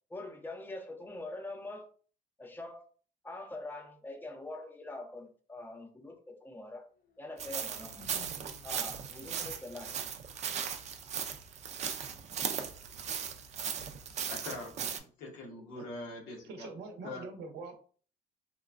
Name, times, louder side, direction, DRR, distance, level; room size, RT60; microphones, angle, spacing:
voice 1, 0.1-1.9 2.4-2.8 3.2-6.9 7.2-8.0 8.6-10.0, left 2 dB, 10° left, 0.5 m, -44 dB
sound 1, 6.9-11.0, left 3 dB, 65° left, 0.7 m, -57 dB
sound 2, 7.4-15.0, right 7 dB, 40° right, 0.4 m, -38 dB
voice 2, 14.3-16.7 17.0-17.3, left 2 dB, 85° left, 1.0 m, -43 dB
voice 3, 16.4-17.8, right 4 dB, 75° right, 0.7 m, -44 dB
3.0 x 2.2 x 2.4 m
cardioid pair, 110°, 17 cm